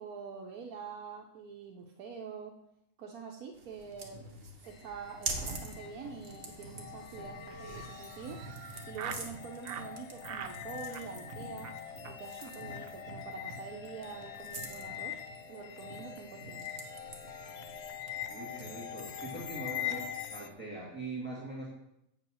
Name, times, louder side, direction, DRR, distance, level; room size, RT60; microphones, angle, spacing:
voice 1, 0.0-2.5 3.0-4.3 4.6-8.4 8.9-11.7 12.0-15.2 15.5-16.7, right 6 dB, 85° right, 0 dB, 1.3 m, -45 dB
sound 1, 3.5-20.2, right 3 dB, 45° right, 1.4 m, -46 dB
magical-background, 4.6-20.5, left 10 dB, 60° left, 0.8 m, -43 dB
Laughter, 7.5-9.3 9.6-9.9 10.2-10.6 10.9-11.3 11.6-11.8 12.0-12.2 12.4-12.5 12.8-12.9 13.2-13.5, right 8 dB, 65° right, 0.5 m, -44 dB
voice 2, 18.3-21.7, right 2 dB, 5° right, -5 dB, 2.1 m, -42 dB
8.3 x 5.3 x 6.3 m, 0.82 s
omnidirectional pair, 1.5 m